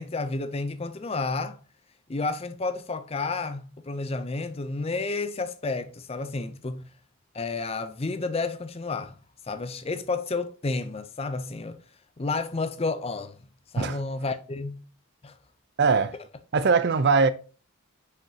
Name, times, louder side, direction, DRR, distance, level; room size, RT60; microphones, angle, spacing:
voice 1, 0.0-1.6 2.1-6.8 7.3-9.1 9.5-11.8 12.2-13.3 13.7-14.8 15.2-15.3, left 3 dB, 25° left, 0.5 m, -31 dB
voice 2, 15.8-16.1 16.5-17.3, right 4 dB, 50° right, 0.5 m, -21 dB
5.8 x 5.8 x 2.8 m
head